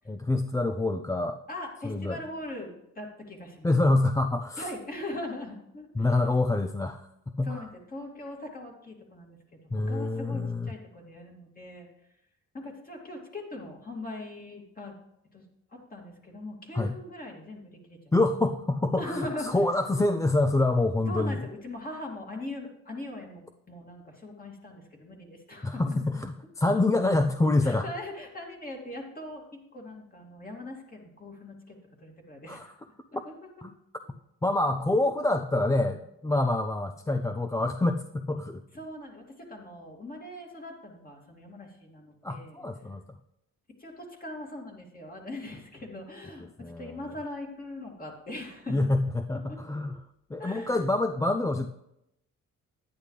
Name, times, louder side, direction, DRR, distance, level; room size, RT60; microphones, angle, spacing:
voice 1, 0.1-1.4 1.8-2.2 3.6-4.7 5.9-7.1 7.4-7.7 9.7-10.7 16.7-17.0 18.1-21.4 25.6-27.9 32.5-32.7 33.6-33.7 34.4-38.6 42.2-43.0 46.6-47.1 48.7-50.0 50.3-51.7, left 2 dB, 10° left, 8 dB, 0.4 m, -26 dB
voice 2, 1.5-3.7 4.6-6.1 7.4-9.4 9.9-11.9 12.5-14.9 15.3-15.4 15.9-18.1 19.0-19.5 21.1-26.0 27.6-31.7 32.0-32.7 33.1-33.3 38.7-42.6 43.8-46.4 46.8-48.9 49.5-49.6 50.4-50.8, left 1 dB, 30° left, 0 dB, 2.5 m, -40 dB
10.0 x 9.8 x 3.3 m, 0.82 s
cardioid pair, 90°, 30 cm